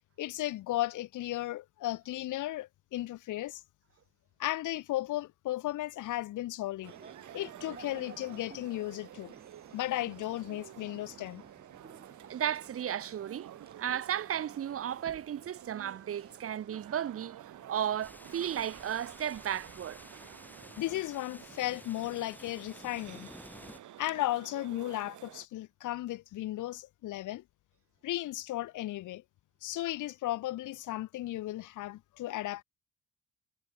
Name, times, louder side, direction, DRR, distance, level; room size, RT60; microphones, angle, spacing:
voice 1, 0.2-3.6 4.4-6.9 7.3-9.3 9.7-11.4 20.8-23.3 24.0-27.4 28.0-29.2 29.6-32.6, left 15 dB, 85° left, 1.6 m, -35 dB
sound 1, 6.8-25.5, right 12 dB, 75° right, 5.3 m, -51 dB
sound 2, 6.9-21.0, right 4 dB, 30° right, 7.5 m, -57 dB
voice 2, 12.3-13.5 13.8-17.4 17.6-20.0, right 10 dB, 50° right, 0.9 m, -34 dB
sound 3, 18.0-23.8, left 1 dB, 5° left, 5.0 m, -52 dB
cardioid pair, 90°, 30 cm